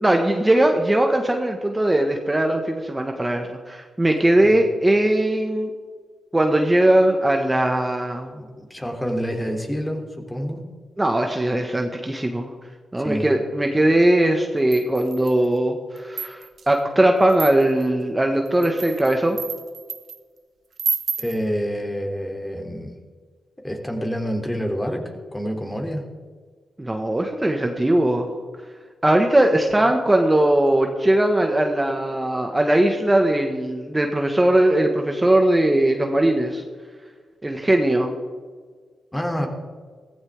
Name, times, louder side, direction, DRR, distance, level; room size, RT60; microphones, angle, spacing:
voice 1, 0.0-5.7 6.3-8.3 11.0-12.5 12.9-19.4 26.8-28.3 29.0-36.6 37.4-38.1, right 1 dB, 20° right, 3 dB, 1.7 m, -19 dB
voice 2, 8.3-10.6 13.0-13.3 21.2-22.9 23.6-26.0 39.1-39.5, equal, 15° left, 2 dB, 3.2 m, -28 dB
sound 1, 14.7-15.5 16.0-16.7 17.3-17.9 18.5-20.2 20.8-21.4, right 6 dB, 65° right, 1.1 m, -30 dB
15.5 x 14.5 x 3.7 m, 1.5 s
supercardioid pair, 45°, 0 cm